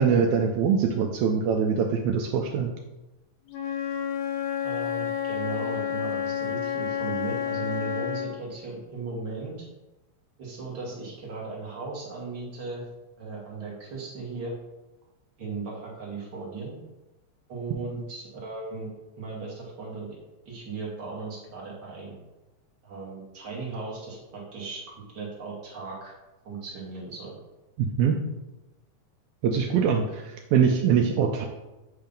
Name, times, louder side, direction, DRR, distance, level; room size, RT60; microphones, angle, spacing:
voice 1, 0.0-2.7 27.8-28.2 29.4-31.5, right 6 dB, 80° right, 2 dB, 1.9 m, -23 dB
Wind instrument woodwind instrument, 3.5-8.5, left 8 dB, 90° left, 2.3 m, -30 dB
voice 2, 4.6-9.7 10.4-12.8 13.2-14.6 15.4-16.7 17.5-18.9 19.2-20.1 20.4-22.1 22.8-24.8 25.1-26.1 26.4-27.4, right 4 dB, 45° right, -3 dB, 1.6 m, -37 dB
8.0 x 2.8 x 5.2 m, 1.0 s
omnidirectional pair, 3.4 m